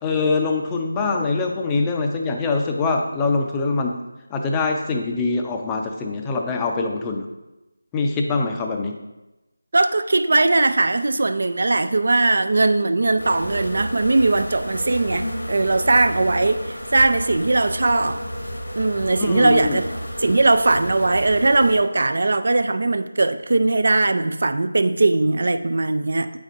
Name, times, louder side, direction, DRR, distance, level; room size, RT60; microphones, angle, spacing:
voice 1, 0.0-3.9 4.3-7.3 7.9-8.9 19.2-19.8, left 3 dB, 10° left, 2 dB, 0.4 m, -23 dB
voice 2, 9.7-18.2 18.8-19.8 20.2-26.4, right 2 dB, 60° right, 10 dB, 0.3 m, -19 dB
sound 1, 13.2-21.8, equal, 85° left, 1.4 m, -31 dB
8.0 x 5.0 x 2.5 m, 1.0 s
figure-of-eight pair, 165°, 0 cm